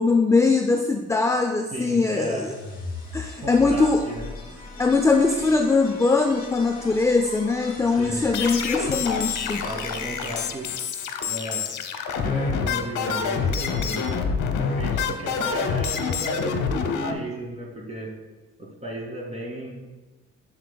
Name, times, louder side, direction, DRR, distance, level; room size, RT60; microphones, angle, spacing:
voice 1, 0.0-2.5 3.1-4.1 4.8-9.6, left 3 dB, 10° left, 5 dB, 0.4 m, -21 dB
voice 2, 1.7-2.8 3.4-4.3 7.9-8.2 9.6-10.7 11.3-11.7 12.2-14.1 14.6-18.1 18.6-19.8, right 1 dB, 20° right, -2 dB, 2.2 m, -34 dB
sound 1, 1.8-10.9, left 2 dB, 30° left, 2.2 m, -39 dB
sound 2, 8.3-17.1, left 6 dB, 75° left, 0.8 m, -27 dB
7.9 x 7.3 x 2.2 m, 1.2 s
cardioid pair, 90°, 30 cm